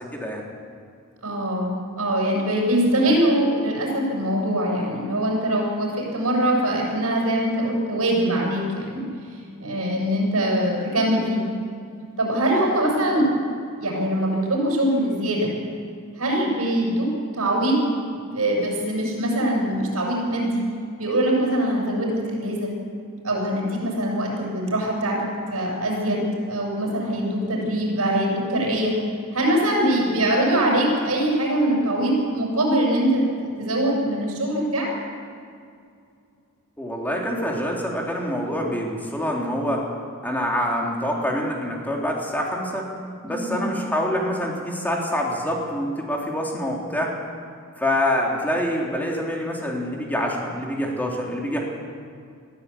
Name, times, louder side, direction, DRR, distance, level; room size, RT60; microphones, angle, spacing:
voice 1, 0.1-0.4 36.8-39.8 40.2-42.9 43.2-47.1 47.8-51.6, equal, 10° left, -1 dB, 3.6 m, -26 dB
voice 2, 1.2-9.1 9.6-11.5 12.2-13.2 13.8-15.5 16.2-17.1 17.4-17.8 18.3-20.6 21.0-22.7 23.2-28.9 29.3-34.9 43.3-43.7, right 1 dB, 75° right, -2 dB, 7.2 m, -23 dB
21.5 x 14.0 x 8.7 m, 2.3 s
head